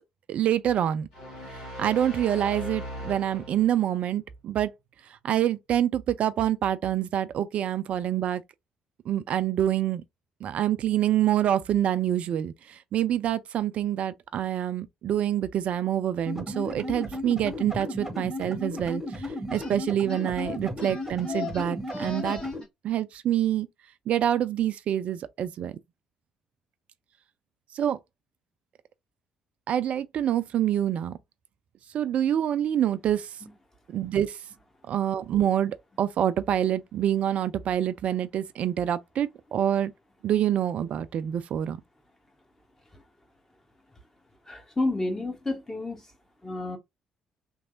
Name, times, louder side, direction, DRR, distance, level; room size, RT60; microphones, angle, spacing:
voice 1, 0.3-1.1 1.8-4.7 5.2-8.4 9.1-10.0 10.4-19.2 19.5-22.4 22.8-23.7 24.1-25.7 27.7-28.0 29.7-31.2 31.9-33.3 33.9-34.4 34.9-39.9 40.2-41.8, right 10 dB, 50° right, 0.3 m, -26 dB
sound 1, 1.1-3.9, equal, 65° left, 1.5 m, -39 dB
sound 2, 16.3-22.6, left 1 dB, 10° right, 1.0 m, -34 dB
sound 3, 19.5-19.8 20.1-22.7, left 5 dB, 35° left, 1.5 m, -39 dB
voice 2, 44.5-46.1 46.4-46.8, left 2 dB, 15° left, 1.0 m, -30 dB
3.1 x 2.7 x 2.4 m
figure-of-eight pair, 45°, 3 cm